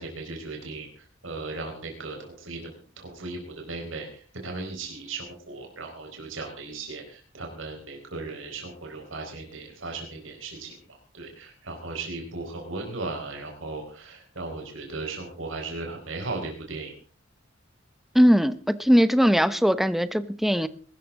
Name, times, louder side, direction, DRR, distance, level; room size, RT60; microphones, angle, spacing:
voice 1, 0.0-10.8 11.1-16.9, right 3 dB, 80° right, 2 dB, 4.5 m, -37 dB
voice 2, 18.1-20.7, equal, ahead, 13 dB, 0.8 m, -20 dB
22.0 x 13.5 x 3.7 m, 0.41 s
head